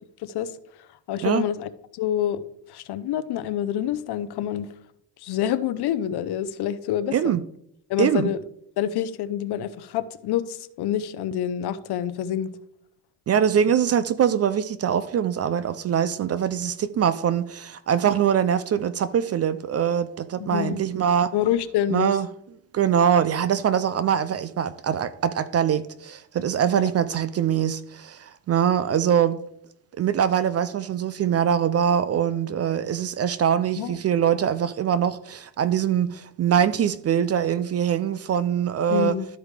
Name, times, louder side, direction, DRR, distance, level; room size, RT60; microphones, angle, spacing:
voice 1, 0.2-0.5 1.1-2.4 2.7-4.7 5.2-7.3 7.9-8.4 8.8-12.5 20.4-20.8 21.3-22.2 26.7-26.9 33.8-34.0 38.9-39.3, left 10 dB, 60° left, 0.8 m, -27 dB
voice 2, 7.1-7.4 8.0-8.3 13.3-21.3 21.9-22.3 22.7-29.4 30.0-39.2, right 9 dB, 35° right, 0.4 m, -23 dB
13.0 x 4.9 x 3.3 m
supercardioid pair, 90°, 46 cm